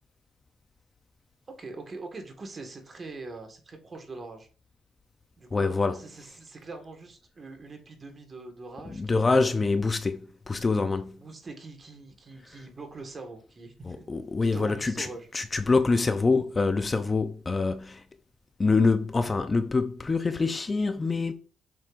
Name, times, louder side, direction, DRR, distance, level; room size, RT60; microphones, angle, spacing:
voice 1, 1.6-4.5 5.4-9.6 11.2-14.1 14.5-15.3, right 3 dB, 35° right, 1.8 m, -43 dB
voice 2, 5.5-6.0 8.9-10.2 10.5-11.2 13.9-15.1 15.3-18.0 18.6-21.3, left 3 dB, 25° left, 0.6 m, -25 dB
7.5 x 5.3 x 2.6 m
cardioid pair, 90°, 0 cm